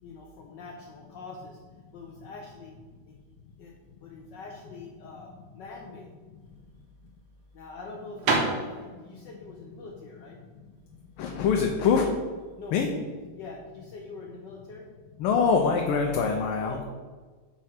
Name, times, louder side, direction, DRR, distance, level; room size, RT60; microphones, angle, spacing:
voice 1, 0.0-2.8 3.6-3.7 4.0-6.1 7.5-10.4 12.6-13.0 13.3-14.9 16.6-16.8, left 3 dB, 65° left, 0 dB, 1.2 m, -44 dB
sound 1, 6.4-12.0, right 3 dB, 80° right, 1.9 m, -32 dB
voice 2, 11.2-12.1 12.7-12.9 15.2-16.8, left 5 dB, 85° left, 1 dB, 1.5 m, -24 dB
4.8 x 4.3 x 5.7 m, 1.4 s
omnidirectional pair, 2.3 m